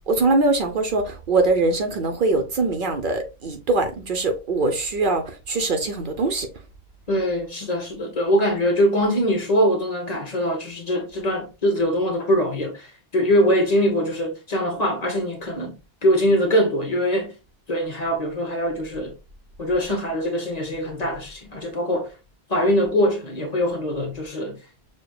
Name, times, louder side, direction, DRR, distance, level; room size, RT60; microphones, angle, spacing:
voice 1, 0.1-6.5, right 3 dB, 60° right, 0.8 m, -22 dB
voice 2, 7.1-12.9 13.1-15.7 16.0-17.3 17.7-19.1 19.6-22.1 22.5-24.6, equal, 40° left, 0.9 m, -22 dB
6.6 x 2.2 x 2.3 m
omnidirectional pair, 1.0 m